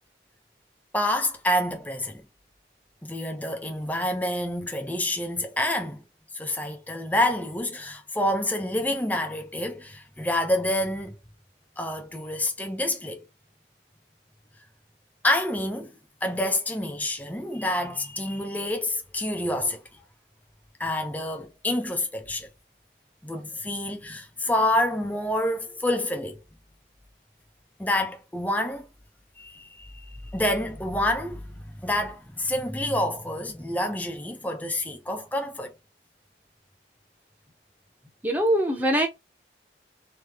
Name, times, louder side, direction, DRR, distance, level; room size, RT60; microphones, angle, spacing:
voice 1, 0.9-2.2 3.0-6.0 6.3-11.2 11.8-13.2 15.2-20.0 20.8-22.5 23.2-26.4 27.8-28.9 29.4-29.9 30.3-35.8, left 1 dB, 10° left, 0.6 m, -28 dB
voice 2, 38.2-39.1, right 1 dB, 10° right, 1.0 m, -22 dB
3.3 x 3.2 x 3.4 m
head